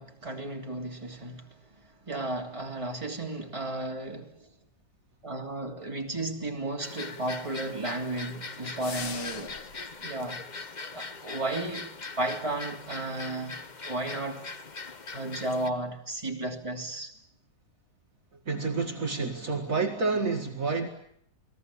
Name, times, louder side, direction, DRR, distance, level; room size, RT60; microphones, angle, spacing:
voice 1, 0.0-1.5 2.1-4.5 5.2-9.5 10.0-10.4 10.9-11.9 12.2-14.5 15.1-17.1, right 2 dB, 15° right, 3.1 m, -34 dB
sound 1, 6.8-15.7, left 4 dB, 30° left, 1.1 m, -41 dB
sound 2, 8.8-9.8, left 6 dB, 85° left, 2.3 m, -39 dB
voice 2, 18.5-20.9, right 4 dB, 50° right, 2.3 m, -29 dB
29.5 x 20.0 x 8.6 m
omnidirectional pair, 1.8 m